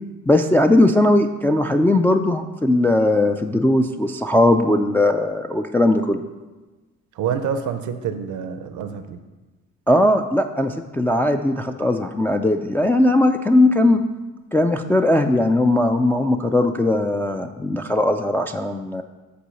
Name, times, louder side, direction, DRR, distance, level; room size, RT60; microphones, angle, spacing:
voice 1, 0.3-6.2 9.9-14.0 14.5-19.0, left 1 dB, 5° left, 4 dB, 0.3 m, -18 dB
voice 2, 7.2-9.2, right 7 dB, 75° right, 9 dB, 0.6 m, -27 dB
6.9 x 4.6 x 6.3 m, 1.2 s
cardioid pair, 90°, 30 cm